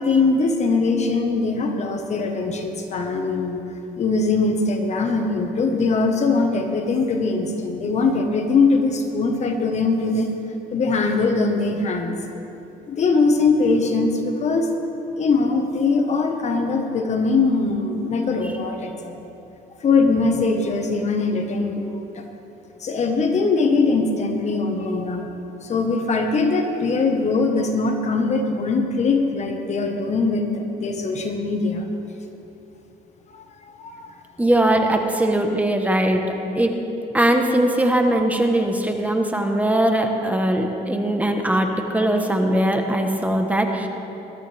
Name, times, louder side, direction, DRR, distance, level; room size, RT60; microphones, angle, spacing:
voice 1, 0.0-3.6 4.0-10.3 10.7-12.2 12.9-14.7 15.2-19.2 19.8-22.2 22.8-25.3 25.6-31.9 33.3-33.4 33.8-34.2, left 3 dB, 40° left, 4 dB, 1.4 m, -21 dB
voice 2, 34.4-36.2 36.5-36.8 37.1-43.9, right 1 dB, 10° right, 3 dB, 1.2 m, -20 dB
21.5 x 13.0 x 3.5 m, 3.0 s
cardioid pair, 110°, 17 cm